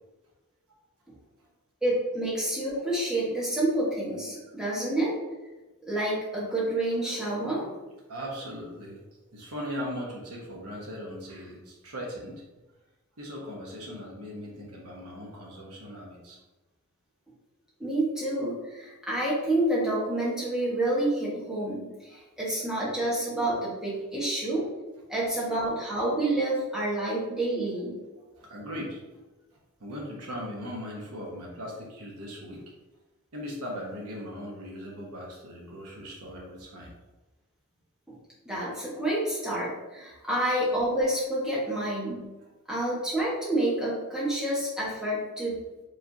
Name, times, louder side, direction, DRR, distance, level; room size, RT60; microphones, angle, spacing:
voice 1, 1.8-5.2 5.9-7.8 17.8-24.7 25.1-27.9 38.1-38.2 38.4-42.3 42.7-45.6, right 1 dB, 5° right, -6 dB, 1.1 m, -28 dB
voice 2, 8.1-12.4 13.2-16.4 22.1-22.2 28.2-29.0 29.8-32.6 33.3-36.9, equal, 80° right, -3 dB, 0.9 m, -39 dB
4.9 x 3.2 x 2.7 m, 1.1 s
head